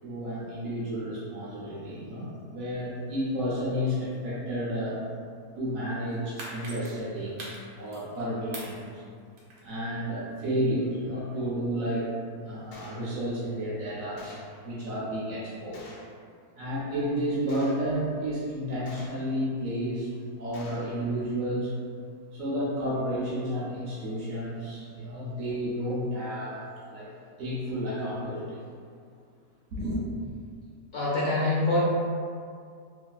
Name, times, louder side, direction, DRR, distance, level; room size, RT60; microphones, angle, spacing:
voice 1, 0.0-5.0 5.6-9.0 9.6-12.1 12.4-14.4 14.6-15.9 16.6-20.1 20.4-21.7 22.3-27.1 27.4-28.6 29.7-30.0, equal, 65° right, -7 dB, 0.9 m, -31 dB
sound 1, 6.0-8.2 8.5-9.8 10.2-10.3, right 1 dB, 85° right, 1.2 m, -42 dB
Gunshot gunfire, 12.7-13.0 14.2-14.6 15.7-16.1 17.5-17.9 18.9-19.3 20.5-20.9, left 1 dB, 85° left, 1.1 m, -48 dB
voice 2, 30.9-31.8, left 2 dB, 60° left, -7 dB, 1.0 m, -25 dB
3.0 x 2.6 x 2.2 m, 2.2 s
omnidirectional pair, 1.7 m